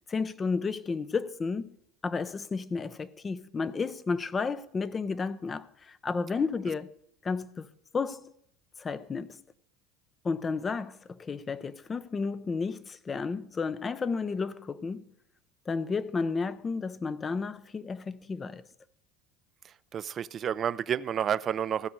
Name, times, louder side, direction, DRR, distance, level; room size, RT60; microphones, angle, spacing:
voice 1, 0.1-1.7 2.0-6.9 7.2-7.7 7.9-8.3 8.8-9.4 10.2-15.1 15.7-18.6, left 4 dB, 25° left, 0.6 m, -32 dB
voice 2, 19.6-21.9, right 9 dB, 40° right, 0.4 m, -30 dB
15.5 x 5.2 x 6.3 m
supercardioid pair, 100°, 0 cm